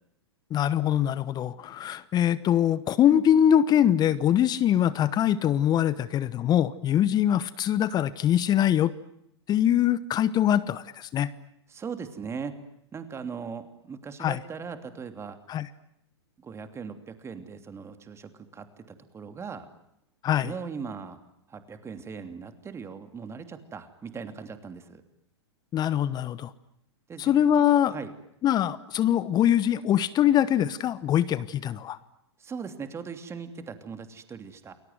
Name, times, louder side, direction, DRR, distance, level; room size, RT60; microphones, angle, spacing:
voice 1, 0.5-8.9 9.5-11.3 14.2-14.4 15.5-15.7 20.2-20.5 25.7-26.5 27.2-27.9 28.4-32.0, left 10 dB, 30° left, 17 dB, 1.1 m, -23 dB
voice 2, 11.7-12.6 12.9-15.4 16.4-19.7 20.4-21.2 21.5-25.0 27.1-27.4 27.9-28.1 32.4-34.7, right 6 dB, 20° right, 8 dB, 2.9 m, -39 dB
29.5 x 21.0 x 9.5 m, 0.77 s
hypercardioid pair, 105°, 14 cm